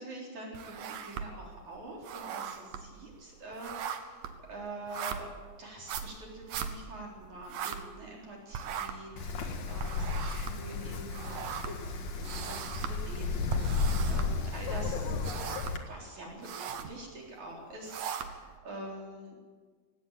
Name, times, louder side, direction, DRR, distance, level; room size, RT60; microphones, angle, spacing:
voice 1, 0.0-5.3 5.6-15.1 15.4-19.4, right 1 dB, 45° right, -2 dB, 5.0 m, -46 dB
sound 1, 0.5-1.6 1.9-8.3 8.5-14.7 15.1-15.9 16.3-17.0 17.6-18.6, right 7 dB, 65° right, 2.6 m, -39 dB
Wind, 9.2-15.8, left 4 dB, 50° left, 2.4 m, -33 dB
19.0 x 17.0 x 9.0 m, 1.5 s
omnidirectional pair, 5.0 m